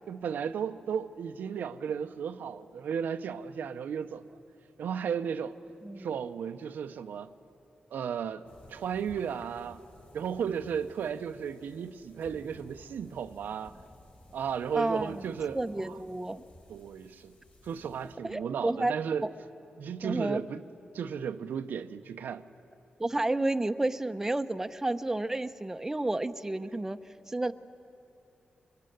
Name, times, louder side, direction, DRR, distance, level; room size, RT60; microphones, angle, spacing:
voice 1, 0.1-4.3 4.8-5.6 6.0-7.3 7.9-9.8 10.1-13.8 14.3-16.0 16.7-17.3 17.6-19.3 19.8-20.6 20.9-22.4, right 7 dB, 90° right, 0.8 m, -34 dB
sound 1, 8.4-18.1, left 1 dB, 50° left, 4.2 m, -56 dB
voice 2, 14.7-15.2 15.5-16.4 18.2-18.9 19.2-19.3 20.0-20.4 23.0-27.0 27.3-27.5, right 2 dB, 15° right, 0.8 m, -31 dB
24.5 x 22.0 x 9.3 m
cardioid pair, 80°, 3 cm